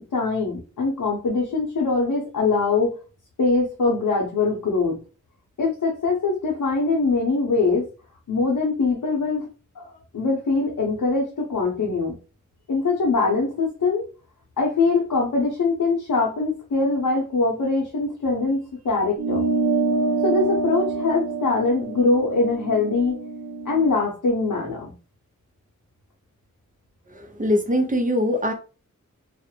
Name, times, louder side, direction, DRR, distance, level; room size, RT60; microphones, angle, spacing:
voice 1, 0.1-2.9 3.4-5.0 5.6-7.9 8.3-9.5 9.8-9.9 10.1-12.1 12.7-14.0 14.6-19.4 20.2-23.1 23.7-24.9, left 3 dB, 80° left, 0.7 m, -22 dB
sound 1, 19.2-24.0, right 4 dB, 65° right, 0.6 m, -26 dB
voice 2, 27.1-28.5, left 1 dB, 25° right, 0.6 m, -22 dB
2.4 x 2.0 x 2.9 m
wide cardioid pair, 60°, 31 cm